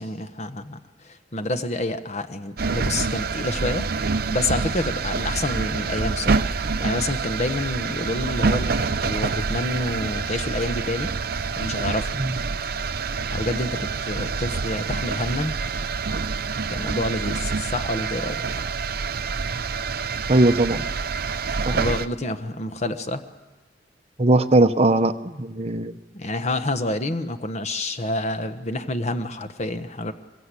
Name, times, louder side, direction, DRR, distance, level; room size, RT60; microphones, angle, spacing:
voice 1, 0.0-3.9 4.3-6.5 6.8-11.1 11.6-12.2 13.3-15.6 16.7-18.4 21.7-23.2 26.1-30.1, left 2 dB, 40° left, 9 dB, 1.1 m, -28 dB
sound 1, 2.6-22.1, right 4 dB, 55° right, 0.7 m, -27 dB
voice 2, 20.3-20.8 21.7-21.8 24.2-25.9, right 2 dB, 35° right, 8 dB, 1.0 m, -19 dB
24.5 x 22.0 x 8.3 m, 1.2 s
head